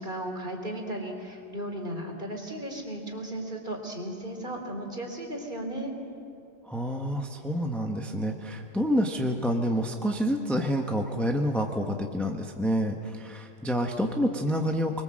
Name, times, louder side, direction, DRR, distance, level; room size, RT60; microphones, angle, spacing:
voice 1, 0.0-5.9, right 1 dB, 25° right, 2 dB, 3.3 m, -35 dB
voice 2, 6.6-15.0, equal, ahead, 3 dB, 0.7 m, -28 dB
25.0 x 22.0 x 7.7 m, 2.5 s
omnidirectional pair, 2.1 m